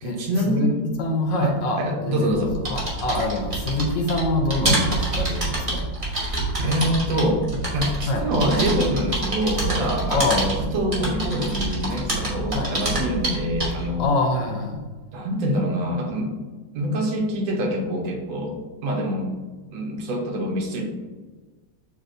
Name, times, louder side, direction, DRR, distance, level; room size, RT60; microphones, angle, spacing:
voice 1, 0.0-0.8 1.4-2.6 6.6-7.5 7.7-14.1 15.1-16.3 16.7-18.5 18.8-19.4 19.7-20.8, equal, 80° right, 1 dB, 1.5 m, -25 dB
voice 2, 1.0-5.9 8.1-8.3 10.1-10.5 12.5-12.7 14.0-14.9, left 2 dB, 80° left, 2 dB, 1.3 m, -25 dB
sound 1, 2.4-13.9, right 2 dB, 25° right, 0.7 m, -27 dB
7.1 x 2.8 x 2.6 m, 1.3 s
omnidirectional pair, 2.1 m